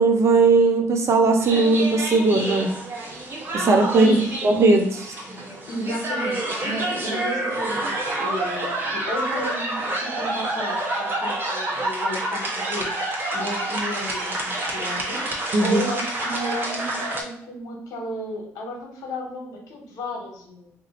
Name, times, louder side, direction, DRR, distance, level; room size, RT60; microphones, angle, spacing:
voice 1, 0.0-2.7 3.5-4.2 4.4-5.1 15.5-15.8, right 3 dB, 50° right, 4 dB, 0.7 m, -18 dB
sound 1, 1.4-17.2, right 2 dB, 35° right, 1.2 m, -28 dB
voice 2, 3.6-4.4 5.0-5.2 5.7-12.4 12.7-15.2 15.6-20.7, equal, 75° left, 0 dB, 1.1 m, -33 dB
2.6 x 2.6 x 4.1 m, 0.69 s
supercardioid pair, 65°, 6 cm